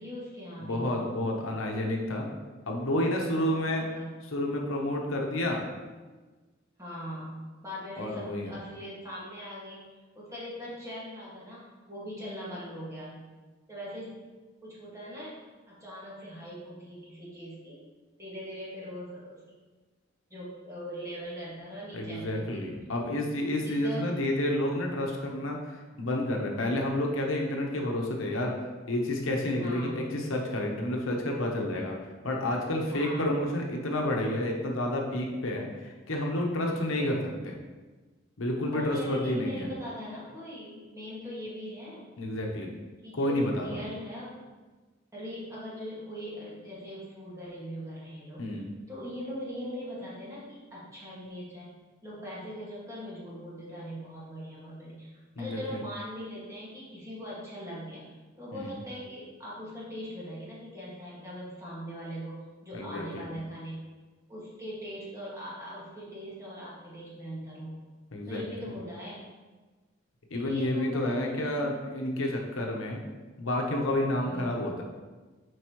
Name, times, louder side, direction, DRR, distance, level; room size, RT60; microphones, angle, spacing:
voice 1, 0.0-0.9 3.6-4.1 6.8-9.8 10.2-13.3 13.7-14.1 14.6-15.3 15.7-17.8 18.2-19.3 20.3-22.6 23.6-24.1 29.6-30.0 32.9-33.3 36.7-37.2 38.7-42.1 43.0-44.4 45.1-48.5 48.9-51.7 52.0-58.0 58.4-63.8 64.3-67.8 68.3-69.2 70.3-71.7 74.1-74.6, equal, 15° right, -8 dB, 2.0 m, -41 dB
voice 2, 0.6-2.3 2.7-3.9 4.3-5.6 8.0-8.5 21.9-28.5 28.9-31.9 32.2-37.2 37.4-37.6 38.4-39.7 42.2-42.7 43.1-43.7 48.4-48.7 55.4-55.8 58.5-58.7 62.7-63.3 68.1-68.4 70.3-73.0 73.4-74.8, left 1 dB, 80° left, 0 dB, 1.0 m, -30 dB
7.9 x 4.6 x 3.1 m, 1.3 s
head